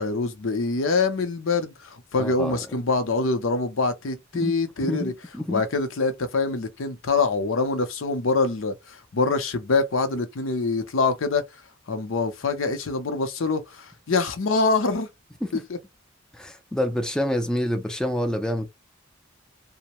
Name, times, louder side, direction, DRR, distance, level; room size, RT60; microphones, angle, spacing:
voice 1, 0.0-5.1 5.5-11.4 11.9-15.1 15.5-15.8, left 3 dB, 80° left, 0.6 m, -25 dB
voice 2, 2.2-2.6 4.3-4.5 4.8-5.6 15.4-15.5 16.3-18.7, left 1 dB, 5° left, 0.4 m, -27 dB
2.6 x 2.1 x 3.0 m
head